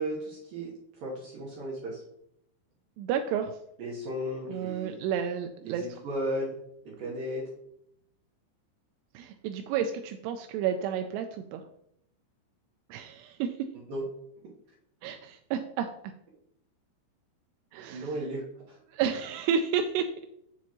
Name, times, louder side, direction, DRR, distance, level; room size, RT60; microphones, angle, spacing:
voice 1, 0.0-2.0 3.8-5.0 5.6-6.5 6.8-7.5 13.9-14.1 17.9-18.8, right 1 dB, 70° right, -4 dB, 2.3 m, -35 dB
voice 2, 3.0-3.6 4.5-5.9 9.1-11.6 12.9-13.6 15.0-15.9 17.7-18.1 18.9-20.3, right 7 dB, 85° right, 6 dB, 2.4 m, -31 dB
7.1 x 7.1 x 3.0 m, 0.75 s
omnidirectional pair, 5.2 m